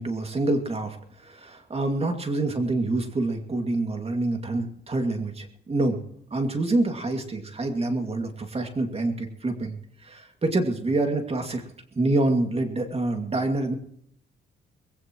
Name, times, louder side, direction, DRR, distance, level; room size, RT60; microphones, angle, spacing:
voice 1, 0.0-6.0 6.3-9.7 10.0-11.6 11.9-13.7, right 2 dB, 30° right, 4 dB, 2.4 m, -26 dB
21.0 x 16.5 x 3.1 m, 0.69 s
cardioid pair, 90°, 20 cm